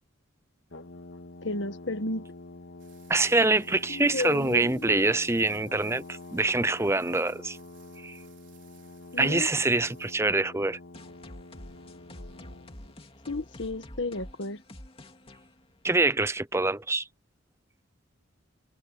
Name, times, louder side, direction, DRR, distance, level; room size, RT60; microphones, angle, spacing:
Brass instrument, 0.7-13.0, left 2 dB, 85° left, 2.3 m, -47 dB
voice 1, 1.4-2.2 3.9-5.1 9.1-9.5 13.3-14.6, left 2 dB, 65° left, 1.5 m, -33 dB
sound 1, 2.8-10.1, right 12 dB, 65° right, 5.4 m, -60 dB
voice 2, 3.1-7.6 8.0-8.2 9.2-10.8 15.8-17.0, right 2 dB, 15° right, 0.7 m, -25 dB
sound 2, 10.9-16.4, left 1 dB, 30° left, 2.6 m, -48 dB
head